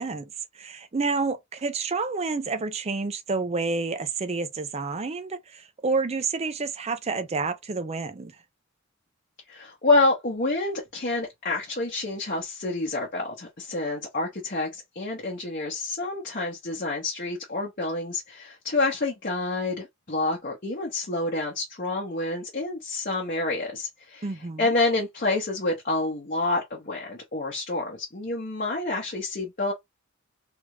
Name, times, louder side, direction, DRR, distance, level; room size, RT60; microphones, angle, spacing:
voice 1, 0.0-8.3 24.2-24.7, right 4 dB, 30° right, 0.5 m, -29 dB
voice 2, 9.5-24.3 24.6-29.7, left 2 dB, 45° left, 0.9 m, -28 dB
3.4 x 2.4 x 3.1 m
head